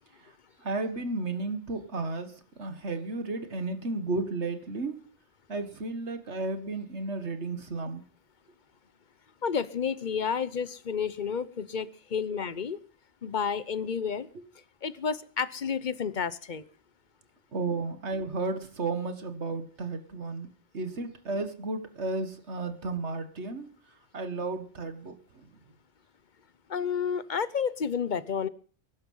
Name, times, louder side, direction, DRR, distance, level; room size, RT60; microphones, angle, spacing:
voice 1, 0.6-5.0 5.5-8.0 17.5-20.5 20.7-23.7 24.1-25.5, right 3 dB, 80° right, 9 dB, 2.0 m, -33 dB
voice 2, 9.4-12.8 13.2-14.3 14.8-16.6 26.7-28.5, left 6 dB, 45° left, 16 dB, 1.0 m, -30 dB
21.5 x 11.5 x 5.6 m, 0.43 s
omnidirectional pair, 1.2 m